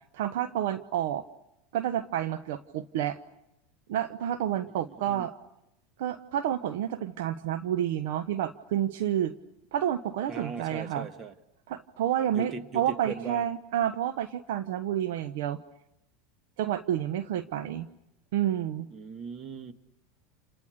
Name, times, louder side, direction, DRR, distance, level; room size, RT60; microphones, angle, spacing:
voice 1, 0.1-1.2 1.7-3.2 3.9-5.3 6.0-9.3 9.7-11.1 11.7-15.6 16.6-17.9 18.3-18.9, right 11 dB, 70° right, 11 dB, 1.0 m, -29 dB
voice 2, 4.7-5.3 10.3-11.3 12.3-13.6 18.9-19.7, right 4 dB, 35° right, 9 dB, 2.2 m, -39 dB
30.0 x 29.0 x 6.7 m, 0.86 s
hypercardioid pair, 85°, 0 cm